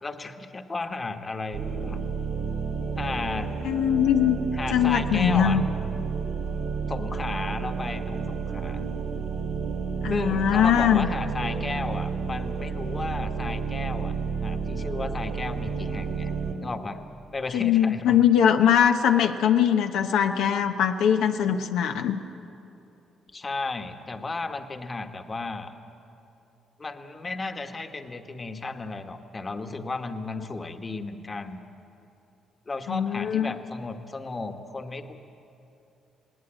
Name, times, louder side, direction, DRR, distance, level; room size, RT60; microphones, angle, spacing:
voice 1, 0.0-2.1 3.0-3.5 4.5-5.6 6.9-8.9 10.1-14.2 14.4-16.3 16.6-17.0 17.3-18.2 23.3-25.7 26.8-31.6 32.7-35.2, left 3 dB, 30° left, 6 dB, 1.3 m, -34 dB
sound 1, 1.5-16.5, right 5 dB, 85° right, 3.4 m, -31 dB
voice 2, 3.6-4.4 4.7-5.6 10.0-11.1 17.5-22.2 32.9-33.5, left 9 dB, 85° left, 5 dB, 0.9 m, -21 dB
20.5 x 18.5 x 8.9 m, 2.9 s
cardioid pair, 90°, 0 cm